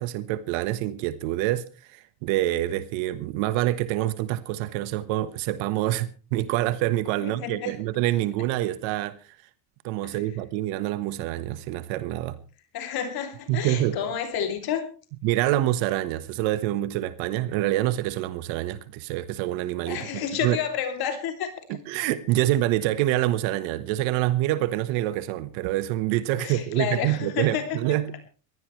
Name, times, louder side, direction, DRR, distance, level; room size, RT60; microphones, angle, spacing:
voice 1, 0.0-9.2 9.8-12.4 13.5-14.0 15.2-20.6 21.7-28.2, right 14 dB, 80° right, 1.4 m, -26 dB
voice 2, 7.2-7.7 10.0-10.2 12.7-14.9 19.9-21.5 26.4-28.0, left 8 dB, 55° left, 3.0 m, -30 dB
22.0 x 16.0 x 3.2 m
cardioid pair, 145°, 45 cm